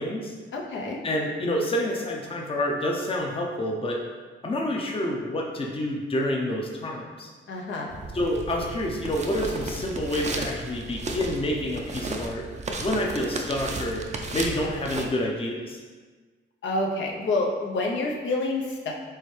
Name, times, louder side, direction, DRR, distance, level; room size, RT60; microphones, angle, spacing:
voice 1, 0.0-0.3 1.0-4.1 4.4-7.3 8.1-12.5 12.8-14.0 14.3-15.8, left 1 dB, 25° left, 0 dB, 0.6 m, -28 dB
voice 2, 0.5-1.0 7.5-7.9 16.6-18.9, left 2 dB, 70° left, -1 dB, 0.7 m, -28 dB
sound 1, 7.9-15.0, right 3 dB, 35° right, 0.5 m, -34 dB
4.7 x 3.3 x 3.2 m, 1.4 s
cardioid pair, 90°, 20 cm